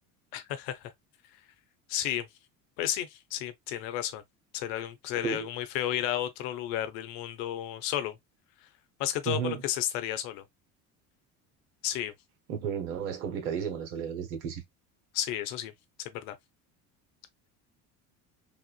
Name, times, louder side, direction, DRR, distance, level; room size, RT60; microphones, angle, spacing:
voice 1, 0.3-0.9 1.9-2.3 2.8-4.2 4.5-8.2 9.0-10.4 11.8-12.1 15.1-15.7 16.0-16.3, left 12 dB, 70° left, 0.8 m, -32 dB
voice 2, 9.3-9.6 12.5-14.6, right 7 dB, 80° right, 1.2 m, -33 dB
3.5 x 2.5 x 2.3 m
hypercardioid pair, 80°, 43 cm